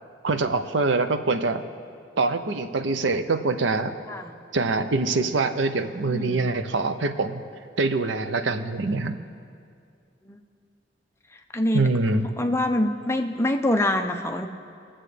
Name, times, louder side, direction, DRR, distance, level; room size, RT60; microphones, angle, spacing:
voice 1, 0.2-1.6 2.2-3.9 4.5-7.4 7.8-9.1 11.7-12.3, right 3 dB, 75° right, 9 dB, 0.6 m, -24 dB
voice 2, 6.0-6.4 10.3-10.4 11.5-11.9 12.4-14.5, left 1 dB, 15° left, 5 dB, 0.6 m, -25 dB
22.0 x 7.5 x 3.3 m, 2.4 s
head